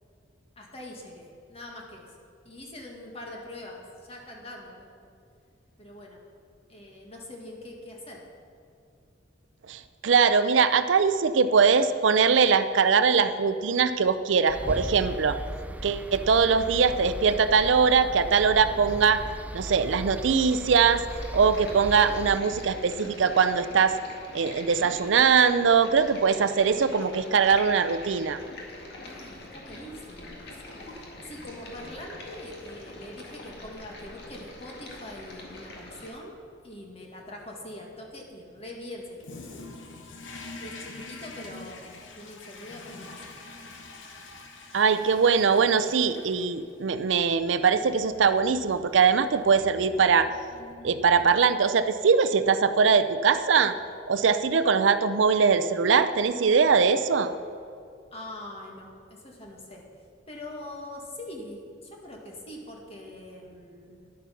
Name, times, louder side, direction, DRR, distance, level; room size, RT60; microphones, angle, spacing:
voice 1, 0.6-2.2 2.4-5.1 5.8-6.2 6.7-8.2 29.0-36.3 36.6-39.6 40.6-41.8 42.2-43.3 58.1-59.8 60.3-64.1, left 1 dB, 35° left, 0 dB, 1.8 m, -43 dB
voice 2, 9.7-15.4 15.8-19.2 19.5-21.0 21.3-24.0 24.3-28.4 44.7-50.3 50.8-53.7 54.1-57.3, right 5 dB, 80° right, 12 dB, 0.5 m, -22 dB
sound 1, 14.5-22.4, right 1 dB, 10° right, 0.4 m, -37 dB
Stream, 21.1-36.1, left 2 dB, 60° left, 1.9 m, -44 dB
Toilet flush, 39.2-51.5, left 3 dB, 85° left, 1.1 m, -46 dB
10.5 x 8.4 x 5.8 m, 2.4 s
head